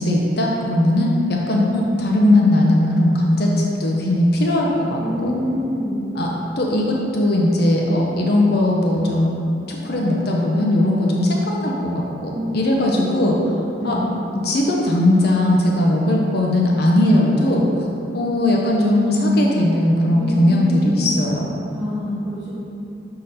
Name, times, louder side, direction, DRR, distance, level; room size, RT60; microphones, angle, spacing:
voice 1, 0.0-3.5 3.8-5.3 6.1-6.3 6.6-9.3 9.7-13.4 13.8-14.0 14.4-17.9 18.1-21.5, left 1 dB, 60° left, -2 dB, 0.7 m, -18 dB
voice 2, 5.0-6.0 10.8-11.0 12.3-13.3 13.8-14.1 20.1-21.2 21.7-22.6, left 1 dB, 5° right, -12 dB, 1.0 m, -27 dB
6.4 x 3.8 x 4.2 m, 2.7 s
head